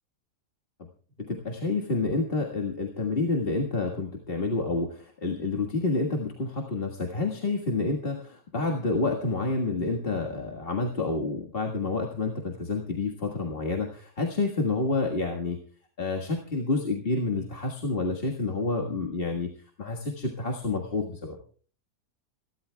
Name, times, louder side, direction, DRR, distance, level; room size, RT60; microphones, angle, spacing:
voice 1, 1.2-15.6 16.0-19.5 19.8-21.4, left 3 dB, 35° left, 0 dB, 1.7 m, -29 dB
27.5 x 13.0 x 2.3 m, 0.42 s
omnidirectional pair, 1.7 m